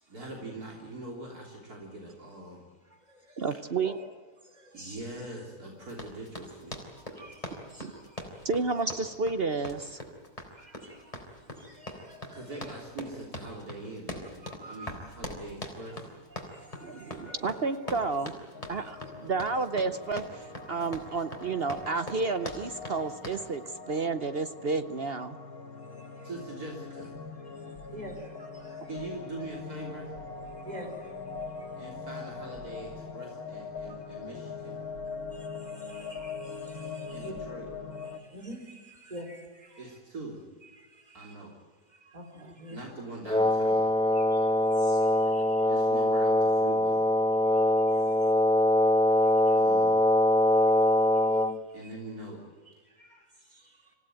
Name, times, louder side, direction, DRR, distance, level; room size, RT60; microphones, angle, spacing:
voice 1, 0.1-2.6 4.7-6.8 12.3-16.0 26.2-27.1 28.9-30.1 31.8-34.7 37.1-37.7 39.8-40.4 41.1-41.5 42.7-43.9 45.7-47.0 49.5-50.1 51.7-52.4, right 2 dB, 70° right, -1 dB, 4.0 m, -42 dB
voice 2, 3.4-4.0 7.8-7.9 8.4-8.9 9.2-10.0 16.8-18.3 18.7-19.0 19.2-25.4 42.4-42.6, right 4 dB, 50° right, 11 dB, 0.8 m, -31 dB
Run, 5.9-23.4, left 1 dB, 20° left, 4.1 m, -42 dB
voice 3, 7.2-7.9 10.6-11.0 11.6-12.7 14.4-14.9 16.3-17.9 18.9-19.0 27.9-28.2 28.9-29.1 30.7-30.9 35.9-36.5 36.7-37.3 38.3-38.6 39.0-39.4 39.8-39.9 40.6-40.7 42.1-42.8 44.2-44.3 44.9-45.0 45.3-45.4 53.0-53.1, right 1 dB, 25° right, 3 dB, 4.7 m, -45 dB
sound 1, 18.5-38.2, left 4 dB, 65° left, 2.3 m, -42 dB
Wind instrument woodwind instrument, 43.3-51.6, left 1 dB, 5° left, 0.5 m, -23 dB
26.5 x 16.5 x 9.1 m, 1.5 s
omnidirectional pair, 1.7 m